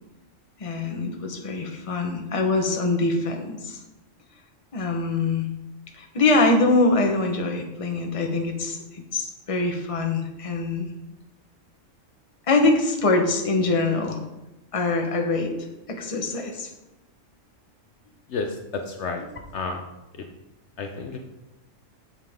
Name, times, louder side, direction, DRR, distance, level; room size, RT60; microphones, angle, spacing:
voice 1, 0.6-3.8 4.7-5.5 5.9-10.9 12.5-14.2 14.7-16.7, left 3 dB, 30° left, 3 dB, 1.0 m, -24 dB
voice 2, 18.3-19.2 19.5-19.8 20.8-21.2, left 4 dB, 65° left, 4 dB, 1.0 m, -30 dB
8.2 x 7.5 x 3.6 m, 0.96 s
omnidirectional pair, 1.3 m